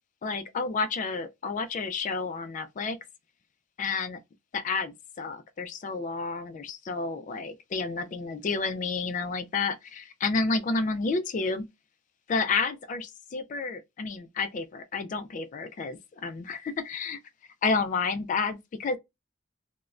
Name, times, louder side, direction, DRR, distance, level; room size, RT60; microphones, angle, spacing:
voice 1, 0.2-3.0 3.8-4.2 4.5-11.6 12.3-17.2 17.6-19.0, left 4 dB, 40° left, 0.3 m, -30 dB
2.4 x 2.1 x 3.0 m
head